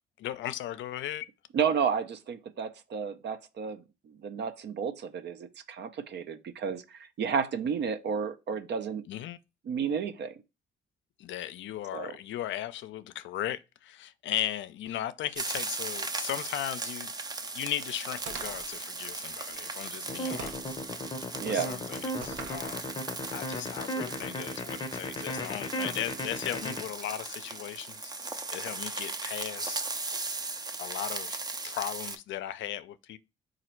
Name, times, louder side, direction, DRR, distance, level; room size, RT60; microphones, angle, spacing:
voice 1, 0.2-1.3 9.1-9.4 11.2-17.1 17.5-22.9 23.3-29.8 30.8-31.4 31.6-33.2, left 12 dB, 70° left, 0.4 m, -37 dB
voice 2, 1.5-9.0 9.7-10.4 11.9-12.2 21.4-21.7, right 6 dB, 60° right, 0.6 m, -32 dB
sound 1, 15.4-32.2, right 3 dB, 20° right, 0.5 m, -38 dB
sound 2, 18.3-18.7 20.4-20.8 22.2-22.7, right 5 dB, 80° right, 0.9 m, -42 dB
sound 3, 20.1-26.8, left 1 dB, 25° left, 0.7 m, -35 dB
4.0 x 2.5 x 4.4 m
cardioid pair, 90°, 20 cm